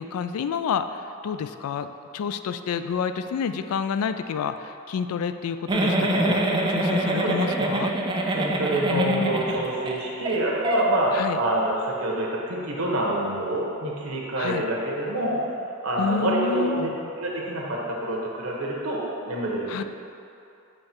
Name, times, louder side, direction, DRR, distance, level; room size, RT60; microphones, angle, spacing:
voice 1, 0.0-7.9 8.9-9.4 11.1-11.4 14.4-14.6 16.0-16.9 19.7-19.8, left 6 dB, 80° left, 10 dB, 0.3 m, -29 dB
Giggle, 5.7-9.9 10.3-10.4 10.6-10.8, right 1 dB, 20° right, 0.4 m, -25 dB
voice 2, 7.2-7.7 8.3-15.3 15.8-16.9 17.2-19.8, right 1 dB, 75° right, -3 dB, 1.1 m, -27 dB
7.6 x 3.2 x 4.5 m, 2.7 s
head